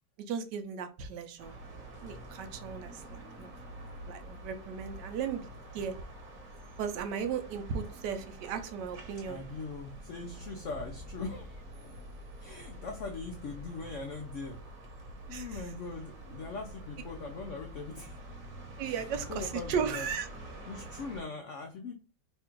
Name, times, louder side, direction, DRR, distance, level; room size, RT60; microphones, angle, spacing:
voice 1, 0.3-1.5 2.0-3.5 4.1-5.9 6.8-9.4 15.3-15.5 18.8-20.3, right 7 dB, 75° right, 8 dB, 1.2 m, -36 dB
sound 1, 1.4-21.2, right 1 dB, 55° right, 1.3 m, -46 dB
voice 2, 9.3-12.1 12.4-14.6 15.3-18.2 18.8-20.1 20.7-21.9, left 4 dB, 90° left, 4 dB, 0.6 m, -41 dB
3.3 x 2.4 x 4.4 m, 0.34 s
omnidirectional pair, 1.9 m